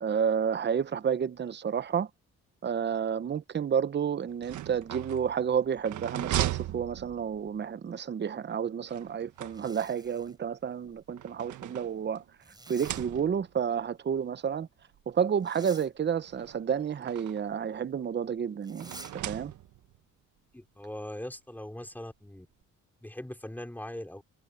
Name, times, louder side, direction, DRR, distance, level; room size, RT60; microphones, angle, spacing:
voice 1, 0.0-2.1 2.6-12.2 12.7-14.7 15.1-19.5, right 7 dB, 35° right, 0.9 m, -30 dB
sound 1, 4.3-7.6 8.9-10.1 10.9-12.3 12.7-13.6 14.5-14.6 15.0-15.1 16.2-17.6 18.8-20.0, right 13 dB, 75° right, 1.4 m, -37 dB
Zipper (clothing), 9.3-10.4 12.4-13.0 15.4-15.9 18.6-19.1, right 2 dB, 15° right, 4.6 m, -49 dB
voice 2, 20.5-22.5 23.0-24.3, left 1 dB, 5° left, 4.3 m, -41 dB
cardioid pair, 90°, 30 cm